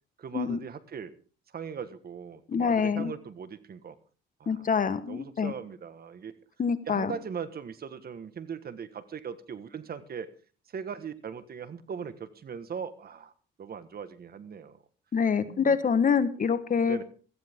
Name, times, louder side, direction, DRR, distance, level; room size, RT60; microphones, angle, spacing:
voice 1, 0.2-1.1 1.5-4.0 4.4-4.7 5.1-6.3 6.9-10.3 10.7-13.3 13.6-14.8 15.4-15.8 16.8-17.0, right 7 dB, 50° right, 13 dB, 1.5 m, -39 dB
voice 2, 2.5-3.1 4.5-5.5 6.6-7.1 15.1-17.0, left 6 dB, 45° left, 12 dB, 1.4 m, -26 dB
16.5 x 14.5 x 3.7 m, 0.38 s
cardioid pair, 90°, 20 cm